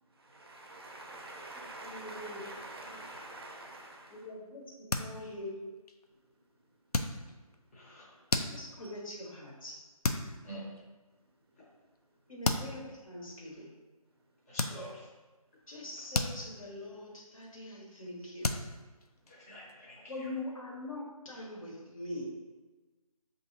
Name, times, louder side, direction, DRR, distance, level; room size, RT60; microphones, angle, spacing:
voice 1, 0.0-4.3 6.1-6.2 6.7-6.8 7.2-7.7 8.0-8.2 8.8-8.9 11.6-11.8 12.2-12.3 14.4-14.5 17.5-17.6 18.2-18.3 19.2-20.0, right 2 dB, 40° right, 0.5 m, -48 dB
voice 2, 1.5-2.4 2.8-2.9 4.1-5.6 8.5-9.8 12.3-13.7 15.7-18.5 20.1-22.3, left 1 dB, 60° left, 1.5 m, -43 dB
sound 1, 4.7-5.5 5.9-6.2 6.9-7.6 8.0-9.0 9.5-9.7 10.0-10.4 10.8-10.9 11.9-12.0 12.4-12.8 13.4-13.6 14.6-15.2 15.6-16.9 17.2-17.5 17.8-17.9 18.4-19.7, left 2 dB, 90° left, 0.4 m, -34 dB
voice 3, 7.7-8.1 10.4-10.7 14.5-15.1 19.3-20.3, right 1 dB, 25° left, 0.7 m, -47 dB
6.1 x 2.7 x 2.8 m
figure-of-eight pair, 155°, 19 cm